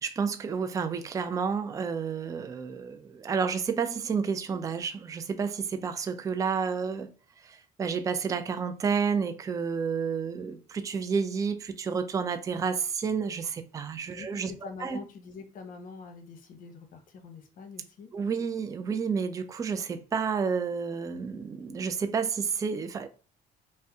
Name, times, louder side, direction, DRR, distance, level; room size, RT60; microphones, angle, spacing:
voice 1, 0.0-7.1 7.4-15.0 18.1-23.1, right 6 dB, 20° right, 0.3 m, -30 dB
voice 2, 14.1-18.1, left 5 dB, 55° left, 0.8 m, -45 dB
2.6 x 2.1 x 3.4 m
cardioid pair, 110°, 17 cm